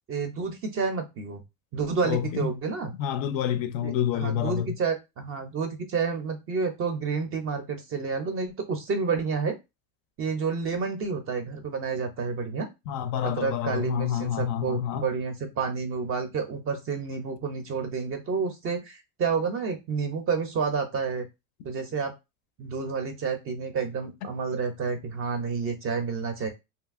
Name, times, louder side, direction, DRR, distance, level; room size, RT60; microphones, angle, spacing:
voice 1, 0.1-1.4 1.7-2.9 3.8-9.6 10.2-12.7 13.2-21.3 21.6-22.1 22.6-26.5, right 5 dB, 30° right, 0.5 m, -29 dB
voice 2, 2.0-2.5 3.0-4.8 12.9-15.1, left 9 dB, 50° left, 0.4 m, -28 dB
2.7 x 2.6 x 2.4 m
supercardioid pair, 130°, 46 cm